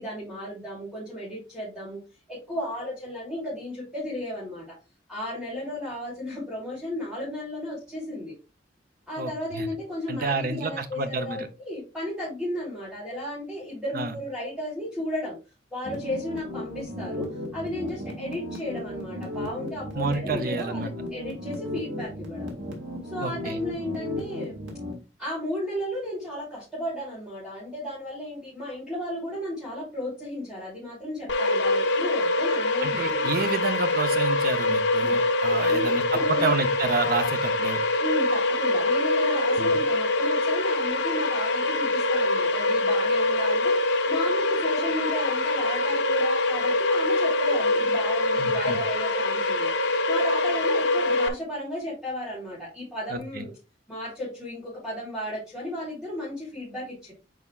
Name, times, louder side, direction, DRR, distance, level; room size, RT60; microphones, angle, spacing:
voice 1, 0.0-2.0 2.3-4.8 5.1-8.3 9.1-15.4 15.7-22.5 23.1-24.6 25.2-33.4 35.0-35.2 35.6-36.6 38.0-43.7 44.1-49.7 50.1-53.5 53.9-57.1, left 1 dB, ahead, -10 dB, 3.8 m, -34 dB
voice 2, 9.2-9.7 10.1-11.5 13.9-14.1 19.9-20.9 23.2-23.6 32.8-37.8 39.6-39.7 48.4-48.8 53.1-53.4, right 3 dB, 55° right, 9 dB, 0.8 m, -29 dB
sound 1, 15.8-24.9, left 1 dB, 80° right, 2.3 m, -35 dB
sound 2, 31.3-51.3, left 2 dB, 75° left, 0.9 m, -24 dB
8.4 x 4.8 x 2.4 m, 0.29 s
head